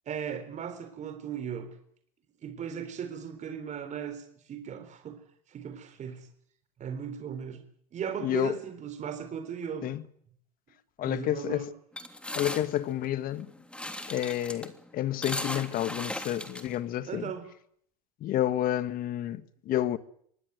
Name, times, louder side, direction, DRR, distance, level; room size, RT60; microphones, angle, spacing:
voice 1, 0.1-1.7 2.4-5.2 5.5-6.3 6.8-7.6 7.9-9.9 11.0-11.7 17.1-17.5, right 7 dB, 40° right, 4.0 m, -37 dB
voice 2, 8.2-8.6 9.8-10.0 11.0-11.6 12.4-13.5 14.1-17.3 18.2-20.0, left 12 dB, 50° left, 1.8 m, -30 dB
sound 1, 12.0-17.3, left 1 dB, 5° left, 3.1 m, -38 dB
25.5 x 19.5 x 8.1 m
hypercardioid pair, 85°, 19 cm